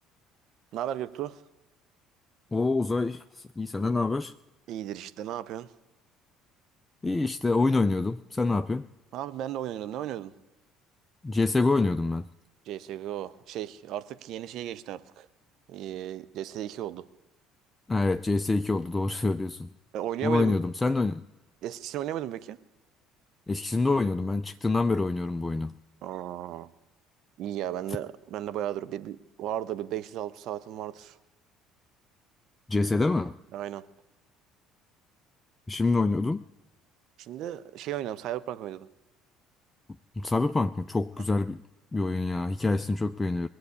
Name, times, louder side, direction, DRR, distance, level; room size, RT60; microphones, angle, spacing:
voice 1, 0.7-1.4 4.7-5.7 9.1-10.3 12.7-15.3 15.7-17.0 19.9-20.6 21.6-22.6 26.0-26.7 27.4-31.2 33.5-33.9 37.2-38.9, right 11 dB, 60° right, 0.7 m, -35 dB
voice 2, 2.5-4.3 7.0-8.9 11.2-12.3 17.9-19.7 20.2-21.2 23.5-25.7 32.7-33.4 35.7-36.4 40.2-41.6 41.9-43.5, left 3 dB, 20° left, 0.4 m, -26 dB
20.5 x 7.9 x 8.4 m
figure-of-eight pair, 55°, 0 cm